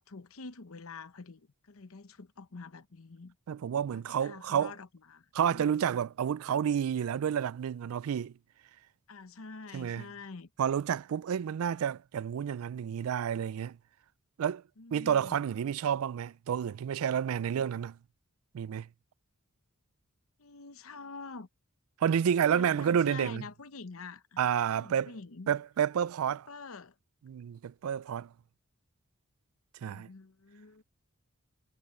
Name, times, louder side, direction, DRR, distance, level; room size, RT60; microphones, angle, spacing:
voice 1, 0.0-3.4 3.9-5.3 5.5-5.7 9.1-10.5 14.8-15.4 20.4-21.5 22.4-24.4 24.7-25.5 26.5-26.9 29.8-30.8, left 4 dB, 65° left, 0.9 m, -46 dB
voice 2, 3.5-4.7 5.3-8.3 9.7-10.1 10.6-13.8 14.4-14.6 14.9-18.0 18.5-18.9 22.0-23.4 24.4-25.1 25.5-26.5 27.3-28.3 29.8-30.1, right 8 dB, 70° right, 0.3 m, -30 dB
head